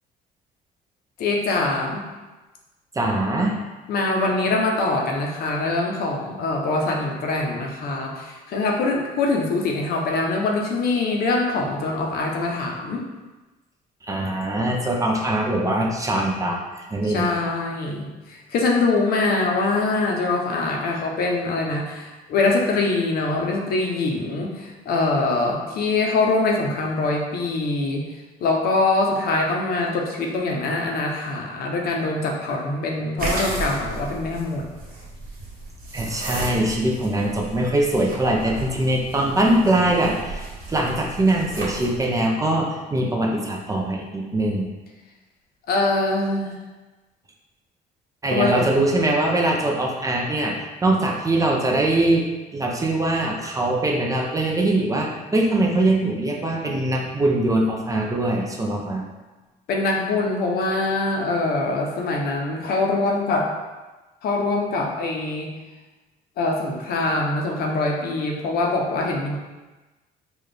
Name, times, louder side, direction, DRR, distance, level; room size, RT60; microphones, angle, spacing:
voice 1, 1.2-2.0 3.9-13.0 17.0-28.0 28.4-34.6 45.7-46.6 48.3-48.7 59.7-63.5 64.2-65.5 66.4-69.4, left 3 dB, 65° left, 0 dB, 0.7 m, -23 dB
voice 2, 2.9-3.5 14.0-17.4 35.9-44.7 48.2-52.2 52.5-59.0, right 1 dB, 20° right, -1 dB, 0.6 m, -22 dB
sound 1, 33.2-42.0, right 2 dB, 55° right, 1.3 m, -34 dB
4.1 x 2.4 x 3.3 m, 1.2 s
cardioid pair, 110°, 17 cm